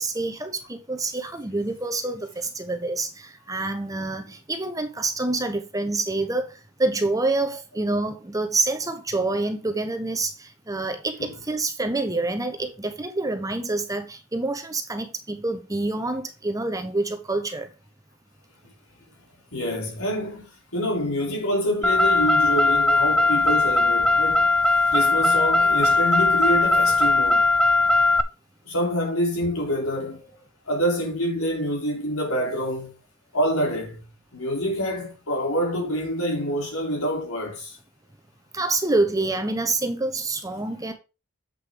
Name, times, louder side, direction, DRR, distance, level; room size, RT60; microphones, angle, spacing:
voice 1, 0.0-17.7 38.5-40.9, right 2 dB, 15° right, 0.9 m, -27 dB
voice 2, 19.5-24.5 24.9-27.5 28.7-30.3 30.7-32.9 33.3-34.0 34.3-37.8, equal, 80° left, 3.5 m, -26 dB
Car, 21.8-28.2, left 2 dB, 5° left, 0.4 m, -19 dB
7.9 x 6.5 x 3.7 m
head